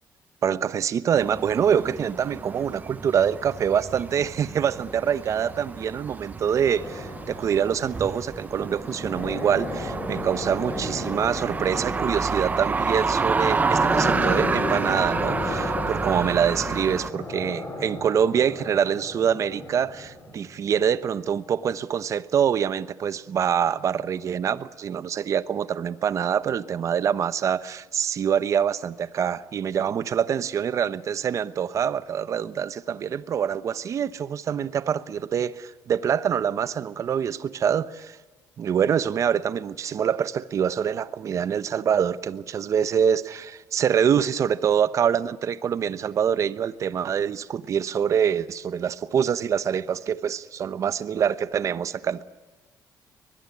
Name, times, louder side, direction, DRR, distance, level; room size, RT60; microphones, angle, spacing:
voice 1, 0.4-38.2 38.6-52.2, right 8 dB, 50° right, 1.0 m, -25 dB
sound 1, 1.1-17.1, right 4 dB, 25° right, 0.9 m, -29 dB
sound 2, 6.7-20.6, left 2 dB, 30° left, 6.9 m, -34 dB
23.0 x 21.0 x 9.9 m
cardioid pair, 125°, 7 cm